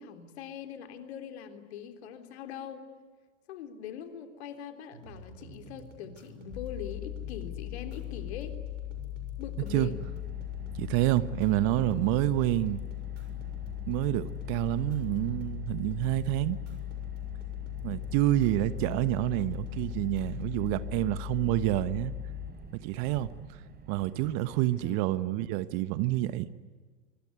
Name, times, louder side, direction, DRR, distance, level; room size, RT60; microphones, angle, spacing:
voice 1, 0.0-2.8 3.5-8.5 9.4-10.1 24.6-25.1, left 8 dB, 60° left, 7 dB, 3.6 m, -42 dB
sound 1, 4.9-20.9, right 2 dB, 80° right, 6.8 m, -49 dB
sound 2, 6.5-22.5, left 16 dB, 25° left, 2.2 m, -39 dB
Car, 9.6-24.8, right 4 dB, 25° right, 5.5 m, -50 dB
voice 2, 10.8-12.8 13.9-16.6 17.8-22.1 22.7-23.3 23.9-26.5, right 16 dB, 45° right, 15 dB, 1.3 m, -28 dB
25.0 x 24.5 x 9.7 m, 1.5 s
hypercardioid pair, 95°, 37 cm